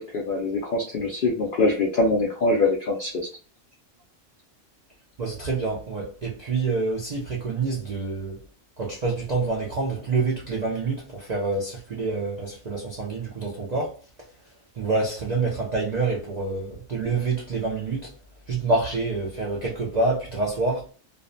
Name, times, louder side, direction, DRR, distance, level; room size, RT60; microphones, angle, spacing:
voice 1, 0.1-3.3, left 2 dB, 70° left, 0.5 m, -23 dB
voice 2, 5.2-8.4 8.8-14.0 14.7-18.1 18.5-20.9, right 3 dB, 70° right, 0.4 m, -27 dB
2.5 x 2.0 x 2.5 m
omnidirectional pair, 1.4 m